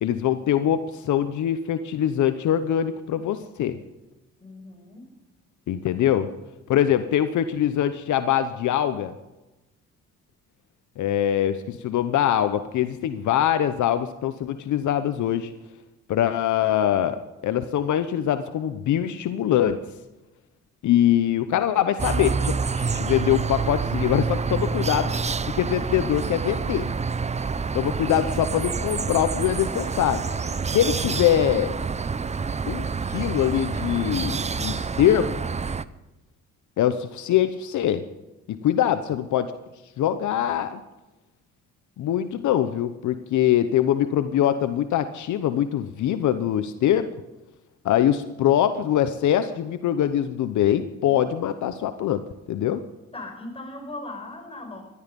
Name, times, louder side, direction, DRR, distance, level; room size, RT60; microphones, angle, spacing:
voice 1, 0.0-3.8 5.7-6.3 6.7-9.1 11.0-15.5 16.1-19.8 20.8-25.1 25.6-26.9 27.7-30.2 30.7-31.8 32.7-35.3 36.8-38.0 38.5-39.5 40.0-40.8 42.0-47.1 47.8-52.2 52.5-52.8, left 11 dB, 75° left, 11 dB, 0.9 m, -23 dB
voice 2, 4.4-5.1 27.5-27.9 53.1-54.8, left 2 dB, 20° left, 3 dB, 5.4 m, -38 dB
sound 1, 22.0-35.9, right 5 dB, 25° right, 0.6 m, -27 dB
18.0 x 13.0 x 5.4 m, 1.0 s
cardioid pair, 90°, 30 cm